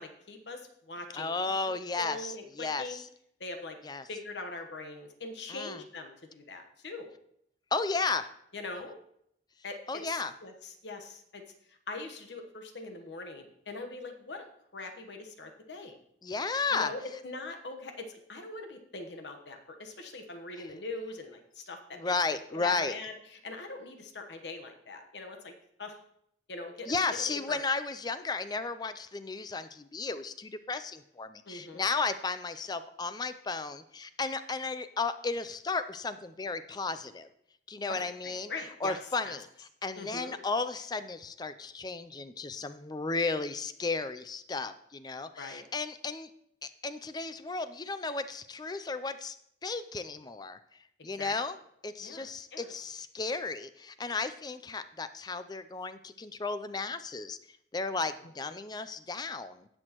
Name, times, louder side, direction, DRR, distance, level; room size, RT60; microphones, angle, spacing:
voice 1, 0.0-1.3 2.0-3.0 3.4-3.8 4.1-7.1 8.5-9.0 9.6-11.4 11.7-16.0 16.7-22.1 22.5-25.5 25.8-26.0 26.5-27.7 31.5-31.9 37.9-39.0 39.2-39.4 40.0-40.4 45.4-45.7 51.2-51.4 52.0-52.7 58.5-58.6, left 3 dB, 75° left, 5 dB, 1.2 m, -42 dB
voice 2, 1.2-3.0 3.8-4.0 5.5-5.8 7.7-8.3 9.9-10.3 16.2-16.9 21.9-22.9 26.9-37.3 37.7-38.5 38.8-39.5 39.8-46.3 46.6-49.4 49.6-50.6 51.0-51.6 51.8-57.4 57.7-59.7, left 4 dB, 25° left, 12 dB, 0.4 m, -34 dB
17.5 x 6.3 x 3.0 m, 0.72 s
head